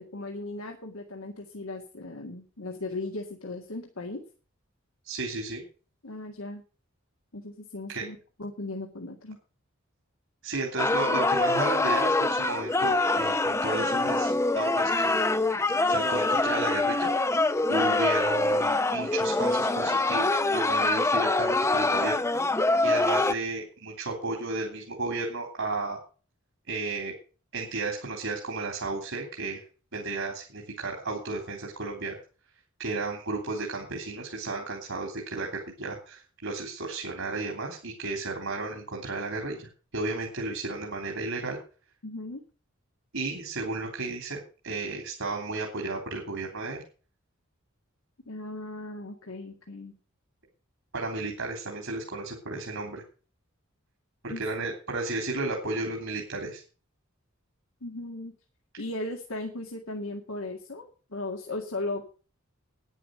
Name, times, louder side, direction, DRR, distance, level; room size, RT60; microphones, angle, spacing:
voice 1, 0.0-4.2 6.0-6.6 7.3-9.4 17.7-18.1 42.0-42.4 48.3-49.9 54.3-54.4 57.8-58.3 58.8-62.0, left 2 dB, 85° left, 2 dB, 2.0 m, -37 dB
voice 2, 5.0-5.6 7.9-8.0 10.4-15.3 15.9-17.1 17.7-22.2 22.8-26.0 26.7-27.1 27.5-29.6 29.9-32.1 32.8-39.7 39.9-41.6 43.1-44.4 44.6-46.8 50.9-53.0 54.2-56.6, right 3 dB, 70° right, 0 dB, 3.4 m, -33 dB
sound 1, 10.8-23.3, left 2 dB, 15° left, 0.6 m, -25 dB
10.5 x 10.0 x 6.4 m, 0.37 s
head